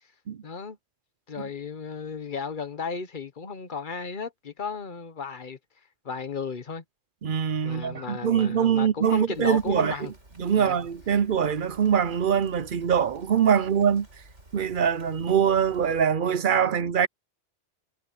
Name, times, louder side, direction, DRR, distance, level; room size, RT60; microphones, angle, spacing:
voice 1, 0.4-0.8 1.3-5.6 6.0-6.8 7.6-10.1 10.5-10.8, left 5 dB, 45° left, 1.2 m, -34 dB
voice 2, 7.2-10.0 10.4-14.1 14.5-17.1, right 8 dB, 55° right, 0.8 m, -23 dB
Rain, 9.3-16.0, right 1 dB, 80° right, 5.7 m, -52 dB
omnidirectional pair, 1.2 m